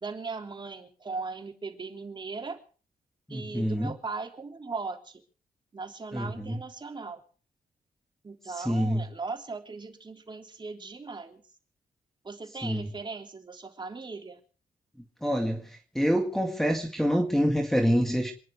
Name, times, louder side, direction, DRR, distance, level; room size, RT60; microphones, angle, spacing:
voice 1, 0.0-2.6 3.3-5.2 5.7-7.2 8.2-11.4 12.2-14.4, right 4 dB, 30° right, 3.4 m, -38 dB
voice 2, 3.3-3.9 6.1-6.6 8.6-9.0 12.6-12.9 15.2-15.6 15.9-18.3, equal, ahead, 2.0 m, -26 dB
27.5 x 10.5 x 4.8 m
cardioid pair, 105°, 15 cm